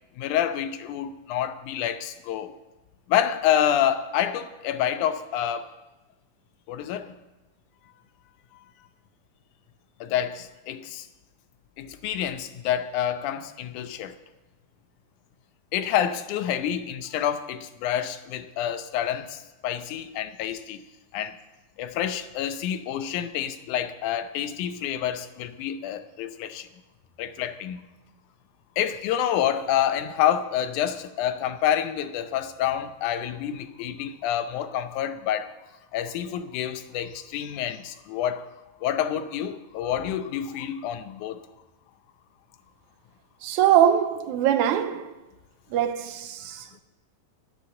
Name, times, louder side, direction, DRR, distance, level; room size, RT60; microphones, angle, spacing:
voice 1, 0.2-2.6 3.1-5.7 6.7-7.1 10.0-11.1 11.8-14.2 15.7-20.8 21.1-21.4 21.8-26.7 27.2-27.8 28.8-35.5 35.9-38.5 38.8-41.5 46.5-46.8, left 10 dB, 85° left, 2.2 m, -28 dB
voice 2, 43.4-45.1 45.7-46.8, right 10 dB, 80° right, 2.1 m, -22 dB
10.0 x 10.0 x 7.6 m
omnidirectional pair, 3.4 m